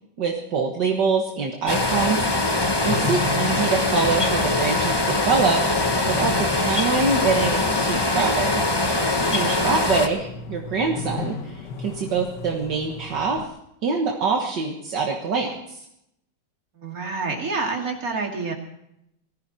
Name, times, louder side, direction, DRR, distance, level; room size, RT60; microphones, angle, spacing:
voice 1, 0.2-2.6 2.8-5.6 6.1-8.6 9.3-13.4 13.8-15.9, right 4 dB, 65° right, 1 dB, 2.1 m, -25 dB
sound 1, 1.7-10.1, left 2 dB, 15° left, 1.0 m, -22 dB
sound 2, 2.6-13.5, left 4 dB, 70° left, 1.7 m, -35 dB
voice 2, 9.5-9.8 16.7-18.5, right 4 dB, 50° right, 1 dB, 2.9 m, -28 dB
20.0 x 14.0 x 4.3 m, 0.78 s
omnidirectional pair, 2.0 m